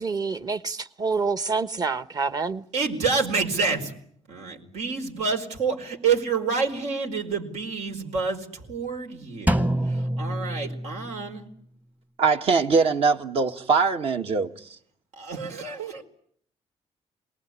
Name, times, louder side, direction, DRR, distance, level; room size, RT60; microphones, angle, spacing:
voice 1, 0.0-2.6, right 4 dB, 35° right, 1.2 m, -27 dB
voice 2, 2.7-3.9 4.3-5.7 6.0-9.6 9.9-11.4 15.2-16.0, right 5 dB, 85° right, 4.7 m, -28 dB
Drum, 9.5-11.4, right 1 dB, 15° right, 1.1 m, -26 dB
voice 3, 12.2-14.7, right 4 dB, 60° right, 1.9 m, -22 dB
27.5 x 19.5 x 9.9 m
cardioid pair, 125°, 11 cm